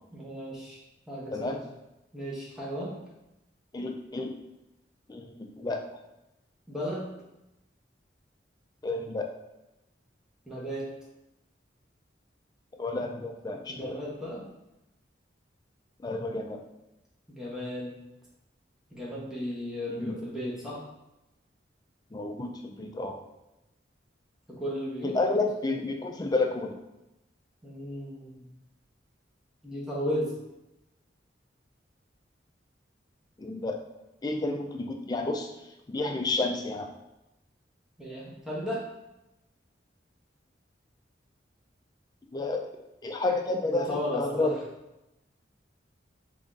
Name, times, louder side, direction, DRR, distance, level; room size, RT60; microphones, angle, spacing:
voice 1, 0.1-0.8 1.1-1.6 2.1-3.0 6.7-7.0 10.5-10.9 13.7-14.5 17.3-18.0 18.9-20.8 24.5-25.2 27.6-28.5 29.6-30.3 38.0-38.8 43.7-44.5, equal, 5° right, -6 dB, 0.8 m, -34 dB
voice 2, 1.3-1.6 3.7-4.3 5.1-6.0 8.8-9.3 12.8-14.0 16.0-16.6 19.9-20.2 22.1-23.2 25.0-26.7 33.4-33.8 34.2-35.5 35.9-36.9 42.3-42.7 43.0-44.5, left 2 dB, 20° left, 3 dB, 0.3 m, -30 dB
3.3 x 2.5 x 3.8 m, 0.93 s
head